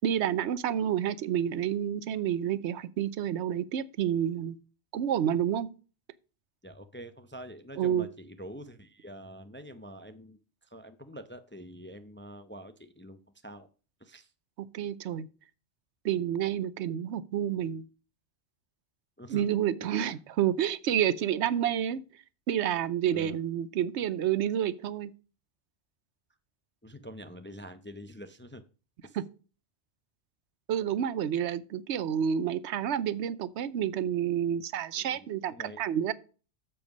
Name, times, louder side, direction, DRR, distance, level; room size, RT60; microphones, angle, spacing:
voice 1, 0.0-4.6 4.9-5.7 7.8-8.1 14.6-15.3 16.0-17.8 19.3-22.0 22.5-25.1 29.2-29.3 30.7-36.1, right 9 dB, 85° right, 0.9 m, -29 dB
voice 2, 6.6-13.7 14.0-14.3 19.2-19.4 20.0-20.2 23.1-23.4 26.8-28.6 29.0-29.2 34.9-35.8, equal, 15° left, 0.4 m, -46 dB
7.8 x 7.2 x 5.2 m
omnidirectional pair, 1.1 m